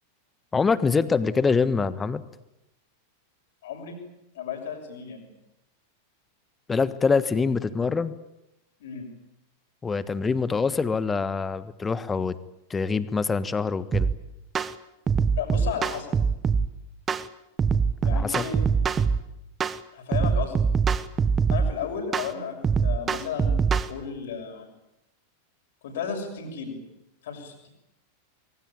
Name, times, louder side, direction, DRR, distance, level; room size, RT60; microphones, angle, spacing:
voice 1, 0.5-2.2 6.7-8.1 9.8-12.3 12.7-14.1 18.1-18.4, left 4 dB, 15° left, 15 dB, 1.4 m, -24 dB
voice 2, 3.6-4.0 4.4-5.3 8.8-9.1 15.4-16.3 18.0-18.6 19.9-20.7 21.5-23.6 23.9-24.7 25.8-26.8 27.2-27.7, left 7 dB, 60° left, 4 dB, 6.9 m, -34 dB
sound 1, 13.9-14.1 14.6-14.7 15.1-16.7 17.1-17.3 17.6-19.2 19.6-19.8 20.1-21.7 22.1-22.3 22.6-23.9, right 5 dB, 20° right, 1.2 m, -23 dB
25.0 x 23.0 x 9.0 m, 0.89 s
figure-of-eight pair, 90°, 0 cm